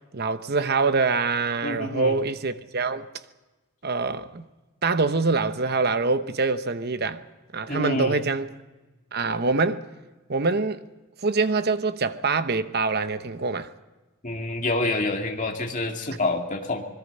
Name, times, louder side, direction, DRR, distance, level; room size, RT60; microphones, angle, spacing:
voice 1, 0.1-3.1 3.8-4.4 4.8-7.2 7.5-8.5 9.1-9.9 10.3-10.8 11.2-13.7, right 4 dB, 45° right, 0.9 m, -24 dB
voice 2, 1.6-2.2 7.7-8.2 14.2-16.9, left 2 dB, 35° left, 2.3 m, -27 dB
25.5 x 21.5 x 5.5 m
head